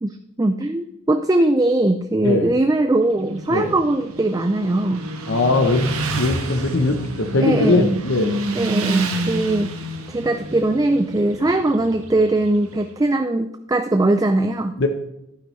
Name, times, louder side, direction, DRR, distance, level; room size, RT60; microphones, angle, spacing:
voice 1, 0.0-5.1 7.4-8.0 8.5-9.7 10.1-14.9, right 2 dB, 15° right, 7 dB, 0.3 m, -20 dB
Motorcycle, 3.1-12.8, right 2 dB, 85° right, 1.3 m, -29 dB
voice 2, 5.3-8.4 11.4-11.5 14.8-14.9, left 2 dB, 60° left, 5 dB, 0.8 m, -20 dB
12.0 x 9.8 x 3.2 m, 0.85 s
head